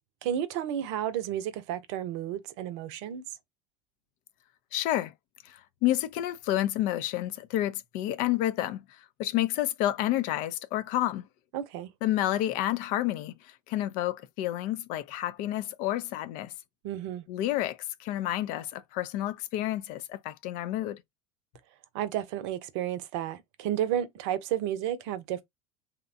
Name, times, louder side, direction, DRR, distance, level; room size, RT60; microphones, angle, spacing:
voice 1, 0.2-3.2 11.5-11.9 16.8-17.2 21.9-25.4, right 11 dB, 65° right, 0.6 m, -32 dB
voice 2, 4.7-5.1 5.4-8.8 9.2-11.3 12.0-16.5 17.3-21.0, left 14 dB, 55° left, 0.4 m, -30 dB
2.8 x 2.1 x 2.5 m
hypercardioid pair, 80°, 17 cm